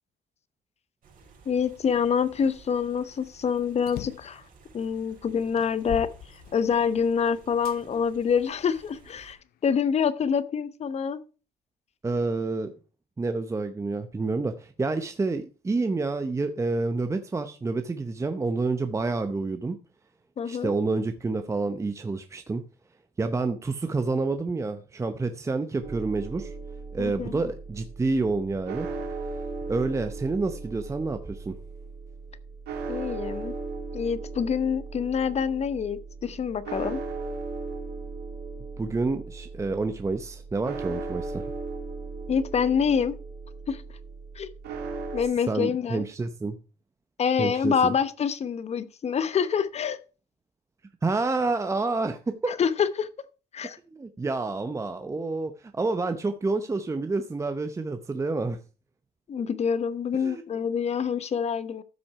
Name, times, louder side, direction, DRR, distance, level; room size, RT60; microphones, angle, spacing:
sound 1, 1.0-9.3, right 5 dB, 50° right, 4.1 m, -54 dB
voice 1, 1.4-4.4 4.7-6.1 6.5-11.2 20.4-20.7 27.0-27.3 32.9-33.6 33.9-37.0 42.3-43.2 43.7-43.8 44.3-44.5 45.1-46.0 47.2-50.0 52.6-53.1 53.5-53.8 59.3-61.8, left 7 dB, 40° left, 0.9 m, -26 dB
sound 2, 3.9-4.4 5.0-5.1 5.6-7.0 7.6-7.8 8.5-9.6, left 13 dB, 65° left, 0.6 m, -40 dB
voice 2, 12.0-12.7 13.2-19.8 20.4-22.6 23.2-26.6 26.9-28.9 29.7-31.6 38.8-41.5 45.5-46.6 47.4-47.9 51.0-52.5 53.9-58.6 60.1-60.4, right 3 dB, 15° right, 0.7 m, -28 dB
sound 3, 25.8-45.2, right 4 dB, 80° right, 2.7 m, -37 dB
13.5 x 6.0 x 4.8 m
cardioid pair, 110°, 17 cm